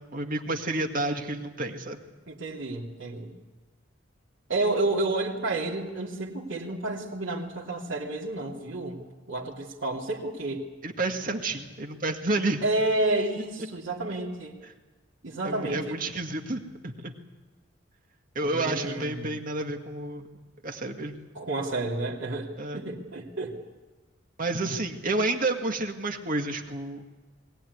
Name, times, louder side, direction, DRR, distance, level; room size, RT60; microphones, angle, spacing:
voice 1, 0.1-2.0 10.8-12.6 15.4-17.1 18.4-20.3 20.6-21.2 22.6-22.8 24.4-27.0, right 2 dB, 45° right, 4 dB, 2.0 m, -30 dB
voice 2, 2.3-3.3 4.5-9.0 9.3-10.6 12.6-14.6 15.2-16.0 18.4-19.3 21.3-23.6, right 2 dB, 80° right, -5 dB, 3.0 m, -30 dB
22.0 x 18.0 x 9.7 m, 1.2 s
head